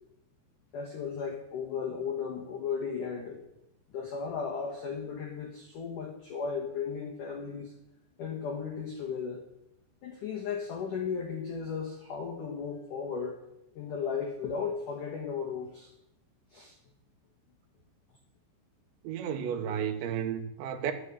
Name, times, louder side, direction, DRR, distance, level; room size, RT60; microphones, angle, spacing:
voice 1, 0.7-3.4 3.9-7.7 8.2-9.4 10.0-13.4 13.8-15.9 16.5-16.7, left 6 dB, 70° left, 2.0 m, -35 dB
voice 2, 19.0-20.9, right 8 dB, 75° right, 3.0 m, -32 dB
12.5 x 7.5 x 8.0 m
omnidirectional pair, 5.7 m